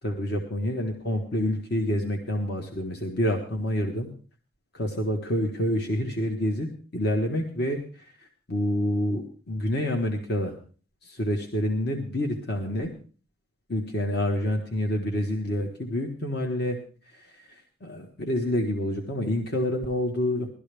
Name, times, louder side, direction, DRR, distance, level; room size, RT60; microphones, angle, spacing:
voice 1, 0.0-4.1 4.7-10.5 11.0-12.9 13.7-16.8 17.1-20.5, left 1 dB, 55° left, 2 dB, 1.5 m, -28 dB
18.5 x 12.5 x 3.4 m, 0.40 s
head